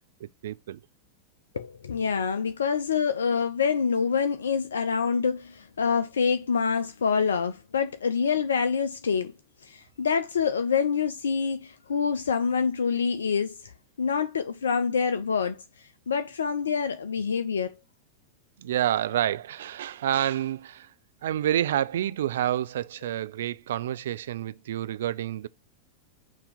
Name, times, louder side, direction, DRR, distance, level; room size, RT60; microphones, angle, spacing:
voice 1, 0.2-0.8 18.6-20.9 21.2-25.5, right 11 dB, 60° right, 0.4 m, -28 dB
voice 2, 1.5-9.3 9.6-13.7 14.0-17.7, left 6 dB, 70° left, 0.4 m, -26 dB
6.6 x 2.8 x 5.0 m
figure-of-eight pair, 90°, 0 cm